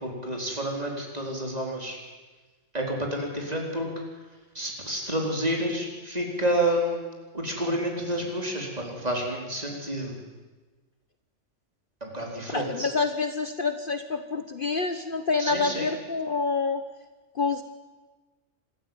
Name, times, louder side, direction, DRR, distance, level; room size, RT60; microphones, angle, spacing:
voice 1, 0.0-2.0 2.7-3.9 4.5-7.0 7.3-10.1 12.0-12.9 15.4-15.9, right 1 dB, 30° right, 0 dB, 4.6 m, -29 dB
voice 2, 12.5-16.8 17.3-17.6, left 4 dB, 45° left, 8 dB, 1.2 m, -27 dB
25.5 x 14.0 x 9.6 m, 1.3 s
omnidirectional pair, 1.3 m